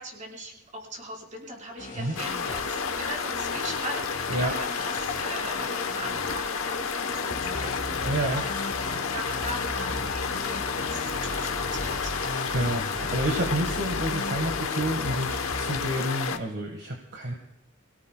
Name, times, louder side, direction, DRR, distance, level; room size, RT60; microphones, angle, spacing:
voice 1, 0.0-12.2 15.2-15.4, right 1 dB, 35° right, -3 dB, 4.5 m, -40 dB
sound 1, 1.8-15.9, left 2 dB, 40° left, 1.0 m, -37 dB
sound 2, 2.2-16.4, left 5 dB, 70° left, 1.0 m, -31 dB
voice 2, 8.0-8.4 12.5-17.3, right 1 dB, 55° right, 2 dB, 1.5 m, -29 dB
26.5 x 17.5 x 2.3 m, 0.80 s
head